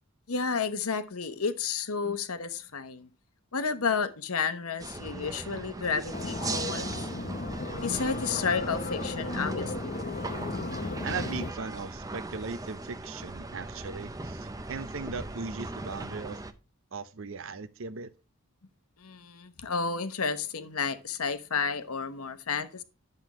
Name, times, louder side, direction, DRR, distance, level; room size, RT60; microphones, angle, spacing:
voice 1, 0.3-3.1 3.5-7.3 7.8-9.9 19.0-22.8, left 5 dB, 80° left, 1.0 m, -31 dB
sound 1, 4.8-16.5, right 2 dB, 15° right, 0.6 m, -39 dB
sound 2, 6.1-11.5, left 2 dB, 35° left, 0.8 m, -35 dB
voice 2, 11.0-16.4 16.9-18.1, right 4 dB, 60° right, 0.6 m, -38 dB
11.0 x 7.6 x 3.0 m
head